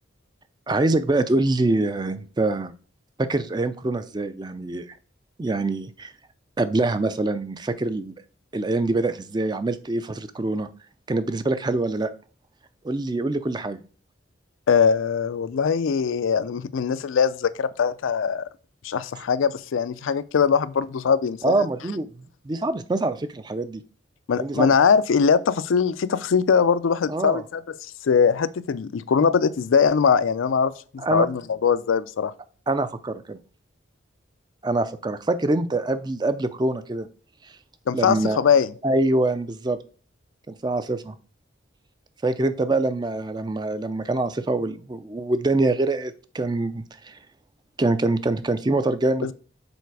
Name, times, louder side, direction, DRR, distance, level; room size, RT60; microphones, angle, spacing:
voice 1, 0.7-2.7 3.2-5.0 5.4-6.1 6.6-8.1 8.5-10.7 11.1-12.1 12.8-13.8 21.4-23.8 24.3-24.7 27.1-27.4 31.0-31.3 32.7-33.4 34.6-37.1 37.9-38.4 38.8-39.8 40.5-41.2 42.2-47.2 47.8-49.3, right 2 dB, 20° right, 0.4 m, -25 dB
voice 2, 14.7-18.5 18.8-21.7 24.3-32.3 37.9-38.7 49.2-49.3, left 6 dB, 80° left, 0.4 m, -21 dB
7.0 x 4.2 x 4.6 m
head